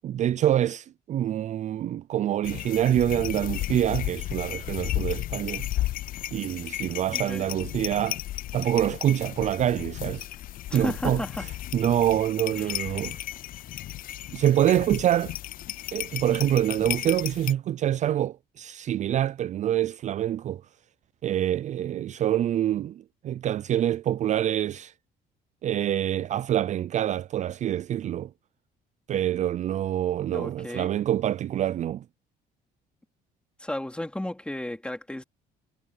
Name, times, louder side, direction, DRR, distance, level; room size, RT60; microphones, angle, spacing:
voice 1, 0.0-5.7 6.3-8.2 8.5-10.3 10.7-11.2 11.7-13.2 14.3-15.3 15.9-20.6 21.2-24.9 25.6-28.3 29.1-32.0, right 11 dB, 45° right, 0.4 m, -26 dB
sound 1, 2.4-17.5, left 14 dB, 55° left, 0.5 m, -34 dB
voice 2, 7.1-7.5 10.7-11.4 12.6-13.2 30.3-30.9 33.6-35.2, left 1 dB, 5° left, 2.7 m, -34 dB
cardioid pair, 110°, 17 cm